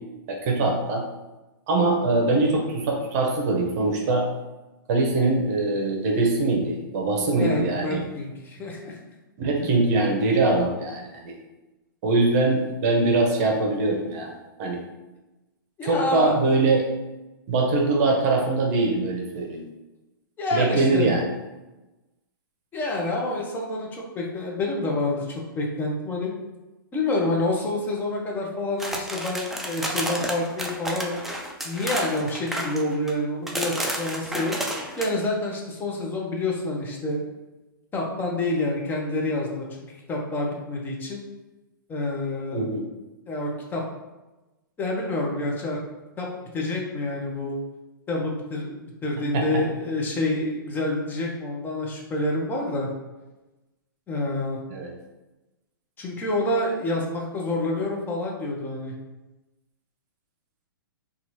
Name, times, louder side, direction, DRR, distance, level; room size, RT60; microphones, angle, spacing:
voice 1, 0.3-1.0 1.7-4.2 4.9-8.0 9.4-11.3 12.0-14.3 14.6-14.8 15.8-16.8 17.5-19.6 20.5-21.2 42.5-42.8 49.3-49.4 54.7-54.9, right 2 dB, 45° right, 1 dB, 0.8 m, -22 dB
voice 2, 7.4-9.0 9.6-9.8 15.8-16.3 20.4-21.2 22.7-26.3 26.9-31.2 31.6-34.5 35.0-37.2 37.9-39.6 40.1-41.2 41.9-42.7 43.3-43.8 44.8-45.8 46.2-46.3 46.5-47.6 48.1-52.9 54.1-54.6 56.0-58.9, left 2 dB, 15° left, -1 dB, 0.7 m, -28 dB
sound 1, 28.8-33.1 33.5-35.1, right 1 dB, ahead, 0.3 m, -31 dB
3.9 x 2.4 x 3.0 m, 1.1 s
hypercardioid pair, 125°, 12 cm